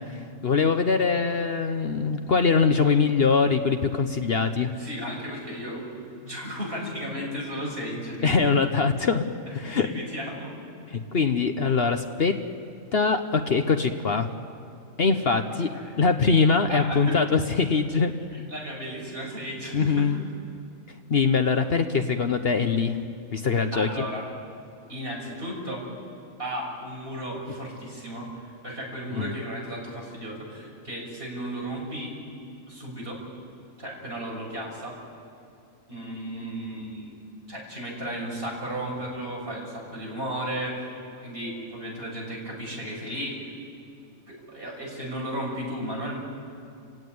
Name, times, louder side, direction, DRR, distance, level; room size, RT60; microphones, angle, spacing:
voice 1, 0.1-4.7 8.2-9.3 9.5-9.9 10.9-12.4 12.9-14.3 15.0-15.7 16.0-18.1 19.7-20.2 21.1-23.0 23.3-24.1 29.1-29.3, left 5 dB, 50° left, 7 dB, 1.1 m, -23 dB
voice 2, 4.6-5.8 6.2-8.5 9.6-10.6 15.5-15.9 16.7-17.1 18.5-20.1 23.5-24.2 24.9-25.8 26.4-32.1 32.7-33.2 33.8-35.0 35.9-43.4 44.3-46.2, equal, 40° right, -3 dB, 6.9 m, -34 dB
29.5 x 17.0 x 9.5 m, 2.6 s
omnidirectional pair, 1.4 m